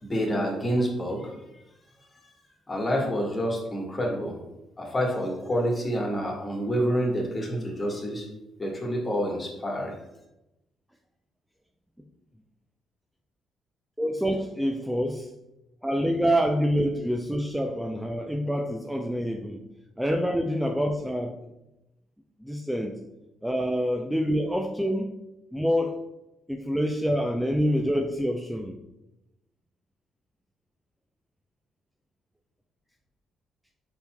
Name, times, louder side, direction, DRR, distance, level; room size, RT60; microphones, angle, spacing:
voice 1, 0.0-1.3 2.7-4.4 4.8-8.3 8.6-9.9, equal, 30° left, -1 dB, 1.5 m, -28 dB
voice 2, 14.0-15.3 15.8-19.6 20.0-21.4 22.4-22.9 23.4-25.1 25.5-26.0 26.5-28.8, equal, 5° right, 2 dB, 0.5 m, -26 dB
5.2 x 4.3 x 2.2 m, 0.92 s
figure-of-eight pair, 45°, 0 cm